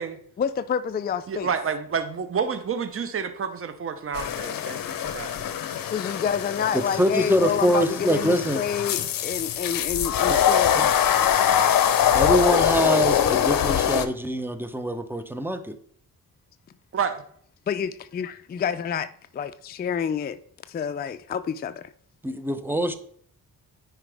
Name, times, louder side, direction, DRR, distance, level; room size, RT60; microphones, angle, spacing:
voice 1, 0.4-1.5 5.9-10.7 17.7-19.1 19.3-20.4 20.7-21.9, left 7 dB, 30° left, 0.4 m, -28 dB
voice 2, 1.3-5.6 16.9-17.2, right 6 dB, 35° right, 0.8 m, -29 dB
sound 1, 4.1-14.1, left 9 dB, 65° left, 0.7 m, -23 dB
voice 3, 6.7-8.6 10.3-10.4 10.7-10.9 12.1-15.8 22.2-22.9, equal, 5° right, 0.7 m, -24 dB
9.9 x 4.8 x 3.4 m
cardioid pair, 85°, 36 cm